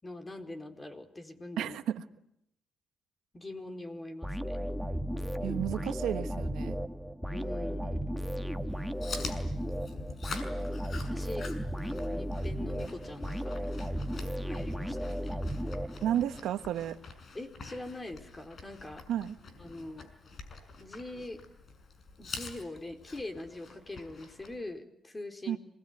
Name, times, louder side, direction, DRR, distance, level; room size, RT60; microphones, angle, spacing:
voice 1, 0.0-1.8 3.3-4.6 7.3-8.0 10.4-11.5 11.8-13.6 14.4-15.3 17.3-19.0 19.6-20.1 20.8-21.4 22.2-25.6, left 2 dB, 20° left, 6 dB, 4.3 m, -43 dB
voice 2, 1.6-2.0 5.4-6.8 16.0-17.0 19.1-19.4 25.5-25.6, right 11 dB, 85° right, 10 dB, 1.3 m, -32 dB
sound 1, 4.2-16.4, equal, ahead, 1.5 m, -35 dB
Chewing mastication, 8.7-24.6, left 4 dB, 50° left, 6.1 m, -46 dB
27.5 x 20.5 x 9.5 m, 0.77 s
cardioid pair, 90°, 0 cm